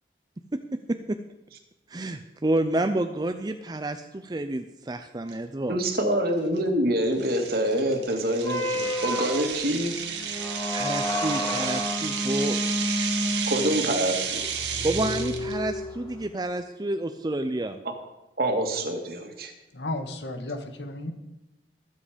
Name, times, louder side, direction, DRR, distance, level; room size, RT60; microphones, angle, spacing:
voice 1, 0.5-1.2 1.9-5.8 10.7-12.6 13.2-13.5 14.8-17.8, right 1 dB, 25° right, 8 dB, 0.5 m, -29 dB
sound 1, 5.3-5.4 5.9-6.1 6.6-6.7 7.2-15.5, right 7 dB, 85° right, 1.7 m, -32 dB
voice 2, 5.7-10.0 13.5-14.4 18.4-19.5, right 1 dB, 60° right, 4 dB, 2.2 m, -26 dB
sound 2, 8.4-16.2, left 1 dB, 25° left, 3.7 m, -30 dB
voice 3, 19.7-21.1, left 2 dB, 85° left, 7 dB, 1.7 m, -33 dB
21.0 x 7.7 x 5.1 m, 0.95 s
head